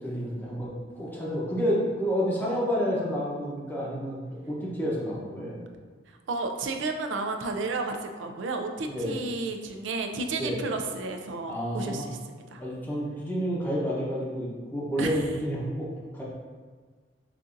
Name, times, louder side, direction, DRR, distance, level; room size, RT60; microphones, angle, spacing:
voice 1, 0.0-5.6 8.9-9.1 10.4-10.6 11.5-12.1 12.6-15.9 16.1-16.2, equal, 10° left, -6 dB, 0.8 m, -30 dB
voice 2, 6.3-12.2 12.5-12.6 15.0-15.2, right 3 dB, 80° right, 5 dB, 0.4 m, -32 dB
6.6 x 2.6 x 2.5 m, 1.5 s
head